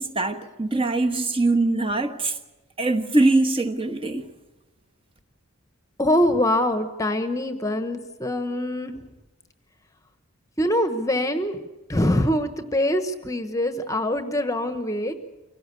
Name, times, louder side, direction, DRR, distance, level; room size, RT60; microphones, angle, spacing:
voice 1, 0.0-2.4 2.8-4.2, right 2 dB, 25° right, 1.2 m, -22 dB
voice 2, 6.0-9.0 10.6-11.6 11.9-15.1, left 1 dB, 15° left, 1.1 m, -24 dB
25.0 x 17.5 x 8.3 m
head